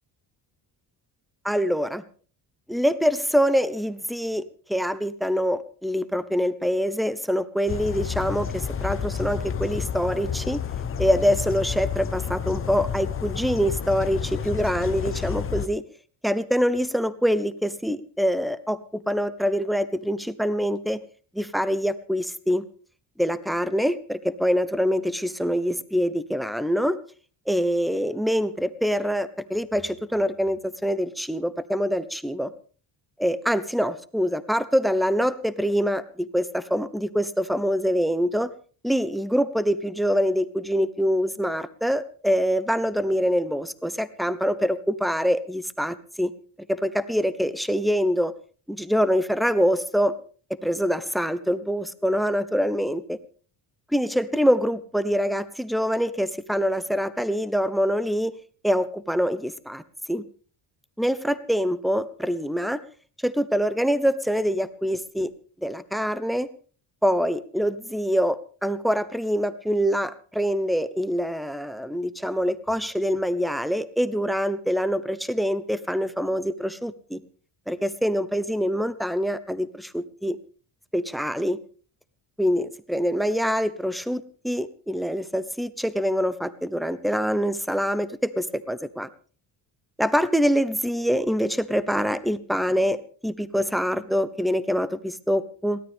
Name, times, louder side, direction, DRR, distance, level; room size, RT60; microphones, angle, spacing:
voice 1, 1.4-2.0 2.7-4.4 4.7-10.6 11.0-15.8 16.2-21.0 21.3-22.6 23.2-27.0 27.5-32.5 33.2-38.5 38.8-46.3 46.7-48.3 48.7-50.1 50.6-53.2 53.9-58.3 58.6-59.8 60.1-60.2 61.0-62.8 63.2-65.3 65.6-66.5 67.0-77.2 77.7-80.4 80.9-81.6 82.4-89.1 90.0-95.8, equal, ahead, 14 dB, 0.9 m, -25 dB
sound 1, 7.7-15.7, left 8 dB, 30° left, 1.0 m, -30 dB
22.5 x 17.0 x 3.6 m, 0.41 s
cardioid pair, 140°, 42 cm